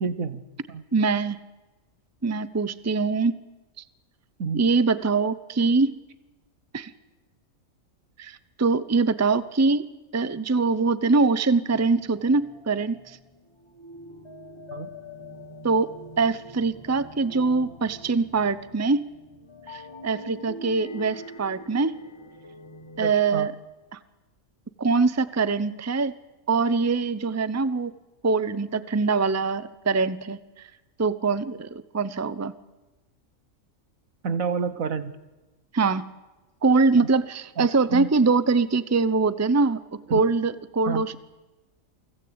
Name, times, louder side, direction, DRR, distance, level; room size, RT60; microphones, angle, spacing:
voice 1, 0.0-0.4 0.7-0.8 4.4-4.6 14.7-14.9 23.0-23.5 34.2-35.2 37.0-37.1 37.6-38.1 40.1-40.2 40.9-41.0, right 5 dB, 80° right, 12 dB, 1.7 m, -29 dB
voice 2, 0.9-1.4 2.2-3.3 4.5-6.0 6.7-6.9 8.2-9.9 10.1-13.2 15.6-19.0 19.7-21.9 23.0-23.5 23.9-24.0 24.8-26.1 26.5-27.9 28.2-30.7 31.0-32.5 35.7-36.1 36.6-39.8 40.1-41.2, right 4 dB, 15° right, 15 dB, 0.6 m, -23 dB
sound 1, 11.7-23.1, left 1 dB, 20° left, 1.9 m, -44 dB
29.0 x 19.0 x 8.8 m, 1.1 s
omnidirectional pair, 1.4 m